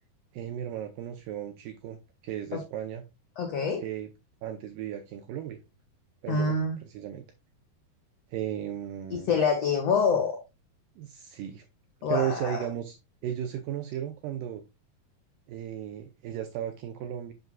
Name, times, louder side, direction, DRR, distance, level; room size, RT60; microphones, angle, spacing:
voice 1, 0.3-2.0 2.2-3.0 3.8-4.1 4.4-5.6 6.2-6.6 6.8-7.3 8.3-9.3 11.0-11.7 12.1-13.0 13.2-14.6 15.5-17.3, right 10 dB, 80° right, 2.0 m, -35 dB
voice 2, 3.4-3.8 6.3-6.8 9.1-10.4 12.0-12.6, left 5 dB, 75° left, 1.4 m, -26 dB
7.9 x 6.0 x 2.2 m
omnidirectional pair, 4.5 m